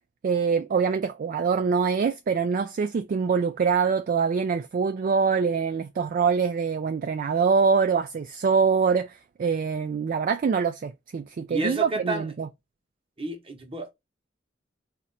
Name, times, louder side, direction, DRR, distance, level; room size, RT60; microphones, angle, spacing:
voice 1, 0.2-12.5, right 5 dB, 45° right, 0.3 m, -24 dB
voice 2, 11.5-12.3 13.2-13.9, right 2 dB, 30° right, 1.0 m, -30 dB
4.2 x 2.5 x 4.0 m
head